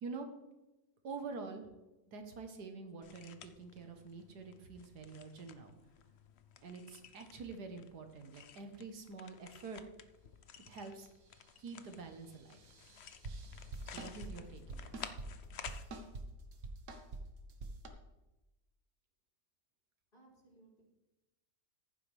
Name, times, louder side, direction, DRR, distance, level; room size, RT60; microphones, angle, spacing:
voice 1, 1.0-1.7 2.1-5.7 6.6-9.8 10.6-11.1 11.6-12.7 13.9-15.1, right 4 dB, 75° right, 5 dB, 1.8 m, -47 dB
sound 1, 3.0-15.8, left 8 dB, 60° left, 0.7 m, -54 dB
sound 2, 12.5-14.3 14.7-15.3 15.7-16.3 16.5-17.2 17.5-17.9, right 3 dB, 50° right, 1.4 m, -45 dB
voice 2, 20.1-20.8, right 2 dB, 30° left, -4 dB, 4.3 m, -63 dB
14.5 x 11.0 x 3.4 m, 1.0 s
omnidirectional pair, 1.7 m